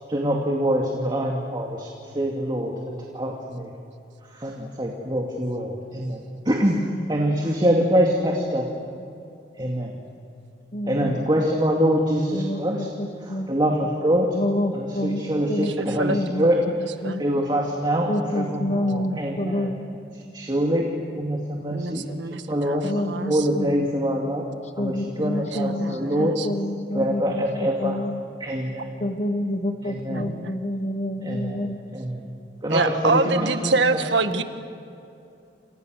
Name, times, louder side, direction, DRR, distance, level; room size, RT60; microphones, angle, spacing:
voice 1, 0.1-3.7 4.3-6.8 7.1-8.7 9.6-9.9 10.9-12.8 13.5-14.3 14.7-16.6 17.2-18.1 18.3-19.7 20.3-20.9 21.1-22.1 22.5-22.8 23.3-24.5 24.8-24.9 25.2-26.3 26.9-28.0 28.4-28.8 29.9-30.3 31.2-31.7 31.9-32.3 32.6-33.7, equal, 25° right, 0 dB, 2.5 m, -24 dB
voice 2, 7.6-7.9 10.7-11.2 12.3-13.5 14.3-16.5 17.0-17.2 18.1-19.8 22.8-23.9 24.6-27.4 27.8-28.1 29.0-31.9 34.2-34.4, left 1 dB, 40° left, 7 dB, 1.4 m, -28 dB
voice 3, 15.8-17.2 18.7-18.8 19.4-19.6 21.7-23.5 25.2-26.5 30.1-30.5 32.7-34.4, right 3 dB, 85° right, 8 dB, 1.7 m, -26 dB
29.0 x 28.0 x 6.6 m, 2.6 s
head